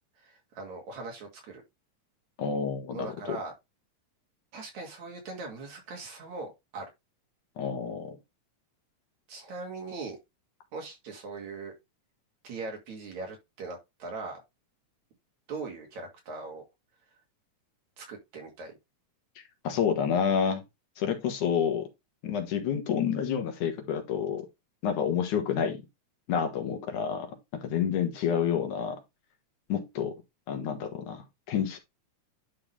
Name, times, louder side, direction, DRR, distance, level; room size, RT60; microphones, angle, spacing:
voice 1, 0.2-1.6 2.9-3.5 4.5-6.9 9.3-10.2 10.7-11.7 12.4-14.4 15.5-16.6 18.0-18.7, right 3 dB, 70° right, 3.6 m, -40 dB
voice 2, 2.4-3.4 7.6-8.2 19.4-20.6 21.0-21.9 22.2-24.5 24.8-25.8 26.3-29.0 29.7-30.1 30.5-31.8, left 7 dB, 80° left, 2.9 m, -29 dB
10.5 x 3.9 x 3.3 m
omnidirectional pair, 3.5 m